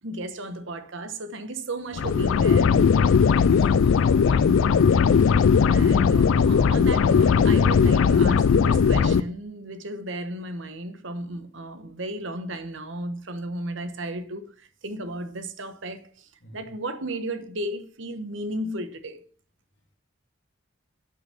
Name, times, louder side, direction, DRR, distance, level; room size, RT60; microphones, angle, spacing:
voice 1, 0.0-2.8 5.3-5.4 5.7-19.2, right 1 dB, 70° right, 1.1 m, -34 dB
sound 1, 2.0-9.2, left 6 dB, 85° left, 0.4 m, -18 dB
voice 2, 3.3-4.8 16.4-16.7, left 1 dB, 65° left, 2.2 m, -41 dB
7.0 x 5.7 x 5.7 m
head